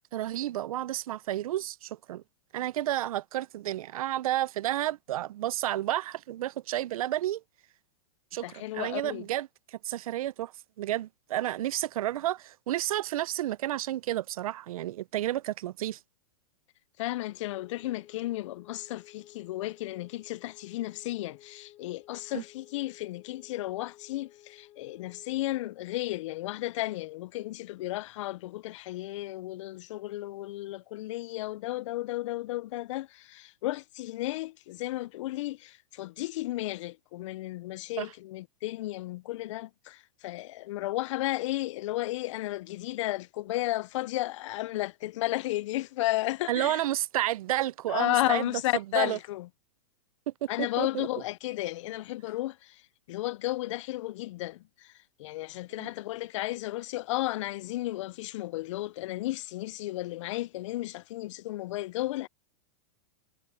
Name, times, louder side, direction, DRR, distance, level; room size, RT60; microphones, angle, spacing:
voice 1, 0.1-2.2 2.5-7.4 8.3-10.5 10.8-16.0 22.3-22.4 38.0-38.1 46.5-48.5 48.7-49.2 50.3-50.5 50.8-51.1 55.8-55.9, right 13 dB, 80° right, 0.5 m, -31 dB
voice 2, 8.4-9.2 17.0-46.8 47.9-49.5 50.5-52.8 53.1-54.9 55.2-62.3, left 17 dB, 60° left, 0.4 m, -33 dB
sound 1, 17.4-25.8, left 13 dB, 30° left, 7.6 m, -55 dB
supercardioid pair, 150°, 18 cm